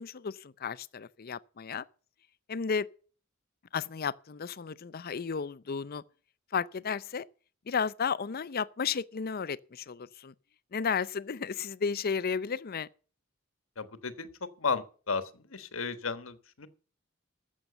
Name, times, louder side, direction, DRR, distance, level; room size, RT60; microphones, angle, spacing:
voice 1, 0.0-1.8 2.5-2.9 3.7-6.0 6.5-7.3 7.7-10.3 10.7-12.9, left 6 dB, 45° left, 0.5 m, -33 dB
voice 2, 13.8-14.3 14.6-16.7, left 4 dB, 75° left, 1.3 m, -34 dB
13.5 x 7.5 x 6.9 m
head